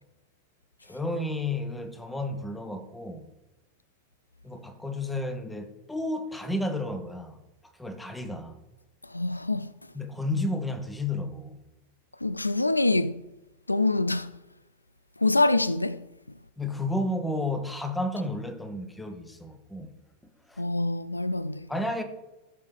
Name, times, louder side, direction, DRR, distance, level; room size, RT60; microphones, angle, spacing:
voice 1, 0.8-3.3 4.4-7.4 7.8-8.6 9.9-11.6 16.6-19.9 20.5-20.6 21.7-22.0, left 1 dB, 5° left, 1.1 m, -32 dB
voice 2, 9.1-9.7 12.2-13.2 13.7-14.3 15.2-16.0 20.6-21.7, left 2 dB, 85° left, 0.3 m, -25 dB
15.5 x 6.5 x 3.6 m
figure-of-eight pair, 90°, 0 cm